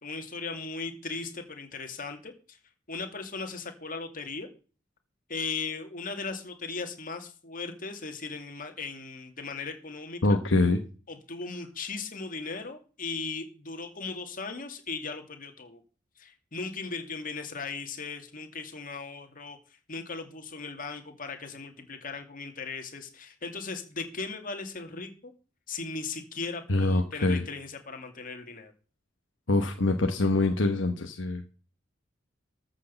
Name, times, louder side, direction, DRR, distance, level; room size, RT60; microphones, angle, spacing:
voice 1, 0.0-2.6 2.9-4.5 5.3-10.4 11.1-15.8 16.2-25.3 25.7-28.7, left 4 dB, 45° left, 5 dB, 2.4 m, -37 dB
voice 2, 10.2-10.8 26.7-27.5 29.5-31.4, left 2 dB, 70° left, 5 dB, 1.2 m, -24 dB
13.5 x 6.5 x 6.9 m, 0.37 s
head